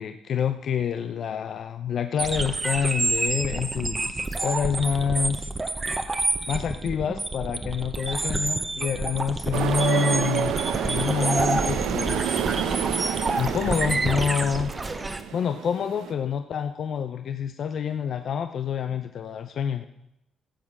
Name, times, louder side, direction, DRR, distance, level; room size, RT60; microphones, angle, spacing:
voice 1, 0.0-5.5 6.5-10.6 10.9-12.4 13.4-14.7 15.3-19.9, left 7 dB, 60° left, 9 dB, 0.6 m, -27 dB
sound 1, 2.2-15.2, right 2 dB, 25° right, 1.0 m, -28 dB
sound 2, 9.5-16.1, right 9 dB, 85° right, 0.9 m, -29 dB
15.0 x 7.4 x 6.0 m, 0.84 s
cardioid pair, 90°, 0 cm